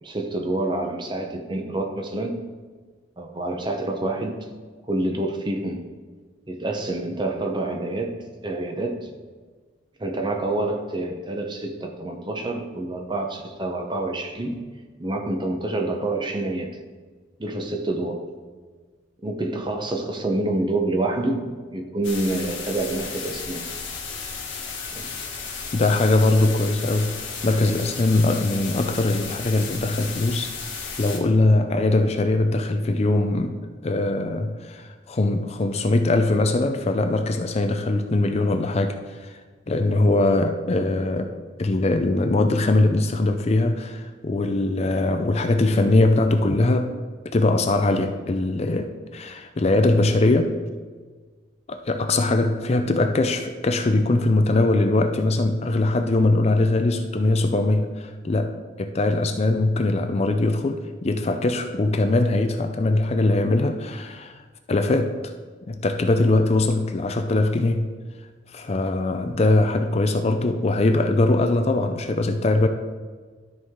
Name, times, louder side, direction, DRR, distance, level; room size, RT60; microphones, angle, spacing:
voice 1, 0.0-2.3 3.2-4.4 4.9-5.8 6.5-9.0 10.0-14.7 15.0-16.8 17.4-18.2 19.2-21.5 21.7-23.7 24.9-25.1, right 2 dB, 25° right, 3 dB, 0.8 m, -27 dB
sound 1, 22.0-31.2, left 5 dB, 85° left, 1.7 m, -34 dB
voice 2, 25.7-30.5 31.0-33.6 33.8-39.4 39.7-41.3 41.6-47.0 47.2-50.5 51.7-64.4 64.7-65.3 65.7-67.9 68.5-72.7, left 2 dB, 35° left, 7 dB, 0.4 m, -21 dB
12.5 x 4.7 x 3.7 m, 1.5 s
head